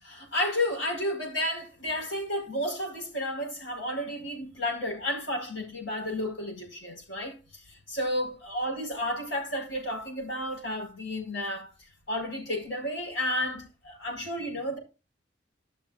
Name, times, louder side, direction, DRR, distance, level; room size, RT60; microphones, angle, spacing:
voice 1, 0.0-7.4 7.7-11.7 12.1-14.8, left 1 dB, 80° left, 5.1 m, -32 dB
16.0 x 6.6 x 2.5 m
head